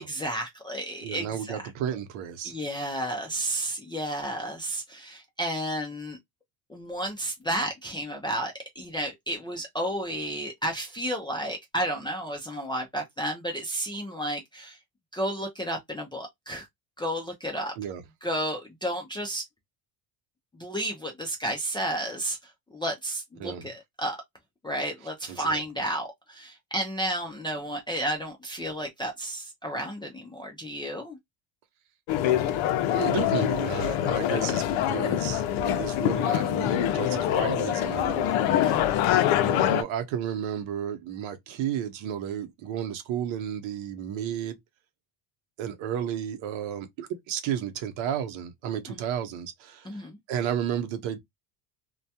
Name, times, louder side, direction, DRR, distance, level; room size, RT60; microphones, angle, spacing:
voice 1, 0.0-1.6 2.4-6.2 6.7-14.8 15.1-16.7 17.0-17.7 18.2-19.4 20.5-24.2 24.6-31.2 38.4-38.9 48.9-49.0 49.8-50.2, right 1 dB, 10° left, 0.3 m, -32 dB
voice 2, 1.0-2.5 17.8-18.0 23.4-23.6 25.3-25.6 32.9-44.6 45.6-50.0 50.3-51.2, right 9 dB, 70° right, 0.7 m, -33 dB
sound 1, 32.1-39.8, left 11 dB, 65° left, 0.5 m, -25 dB
2.2 x 2.2 x 2.7 m
cardioid pair, 120°, 49 cm